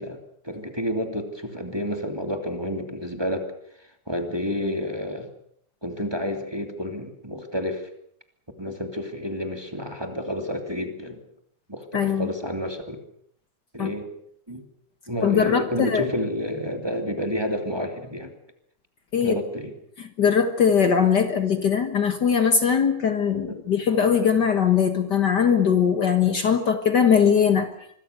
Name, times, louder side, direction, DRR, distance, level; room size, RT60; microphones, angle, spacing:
voice 1, 0.0-3.5 4.1-5.3 5.8-7.9 8.6-11.2 11.7-13.0 13.7-14.1 14.5-14.6 15.1-18.3 19.2-19.7 23.5-23.6, equal, 10° right, 5 dB, 2.7 m, -30 dB
voice 2, 11.9-12.3 13.8-13.9 15.2-16.1 19.1-19.3 20.2-27.7, left 7 dB, 55° left, 8 dB, 1.9 m, -20 dB
25.5 x 22.5 x 6.7 m, 0.70 s
omnidirectional pair, 2.4 m